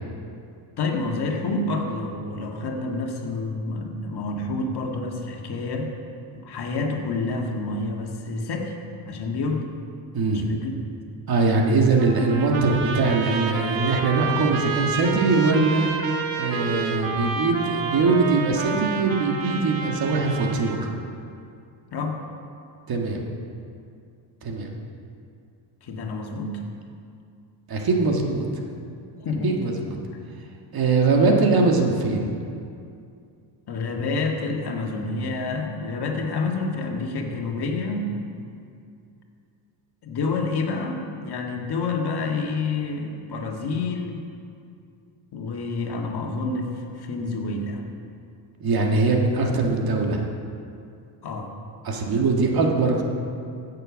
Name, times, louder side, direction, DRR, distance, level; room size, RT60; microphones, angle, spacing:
voice 1, 0.8-5.9 6.4-8.8 9.1-9.7 10.3-10.7 21.9-22.2 25.8-26.6 29.2-29.6 33.7-38.1 40.0-44.2 45.3-47.8 51.2-51.5, left 3 dB, 55° left, 1 dB, 1.8 m, -28 dB
voice 2, 10.1-10.5 11.3-15.9 16.4-20.9 22.9-23.2 24.4-24.7 27.7-28.5 29.4-30.0 30.7-32.3 48.6-50.2 51.8-53.0, right 3 dB, 50° right, 1 dB, 1.8 m, -21 dB
Trumpet, 12.0-20.9, right 5 dB, 80° right, 1.3 m, -30 dB
15.5 x 6.8 x 6.3 m, 2.4 s
cardioid pair, 105°, 46 cm